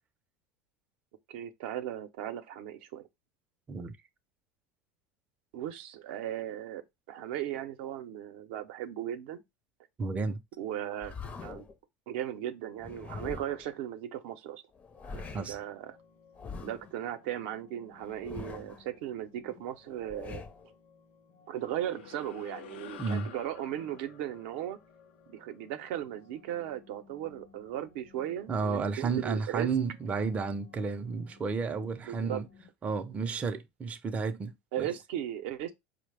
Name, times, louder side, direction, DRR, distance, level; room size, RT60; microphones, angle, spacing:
voice 1, 1.3-3.1 5.5-6.8 7.1-9.4 10.6-11.2 11.4-11.7 12.1-14.6 15.1-16.0 16.6-20.4 21.5-24.8 25.3-29.7 32.1-32.4 34.7-35.7, right 11 dB, 75° right, 0.5 m, -37 dB
voice 2, 10.0-10.4 15.3-15.6 23.0-23.3 28.5-32.5 32.8-34.9, right 5 dB, 25° right, 0.4 m, -32 dB
sound 1, 11.0-11.8 12.8-13.7 14.7-15.6 16.3-16.9 18.0-18.8 19.9-20.7, left 4 dB, 25° left, 0.5 m, -43 dB
sound 2, 15.2-32.7, left 5 dB, 60° left, 0.8 m, -60 dB
sound 3, 21.6-26.2, left 10 dB, 90° left, 0.4 m, -50 dB
4.5 x 2.0 x 3.2 m
supercardioid pair, 110°, 6 cm